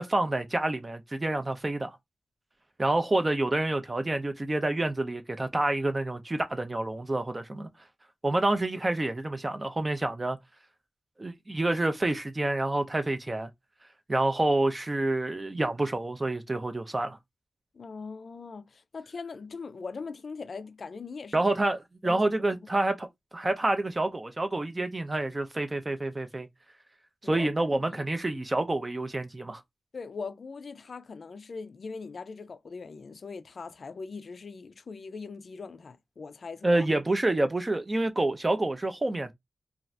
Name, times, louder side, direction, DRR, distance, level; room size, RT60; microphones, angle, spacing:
voice 1, 0.0-2.0 2.8-7.7 8.2-10.4 11.2-13.5 14.1-17.2 21.3-23.1 23.3-26.5 27.2-29.6 36.6-39.3, right 2 dB, 25° right, 0.4 m, -28 dB
voice 2, 17.7-21.4 22.0-22.3 27.2-28.0 29.9-36.9, left 4 dB, 55° left, 0.4 m, -41 dB
2.6 x 2.4 x 3.1 m
wide cardioid pair, 145°, 0 cm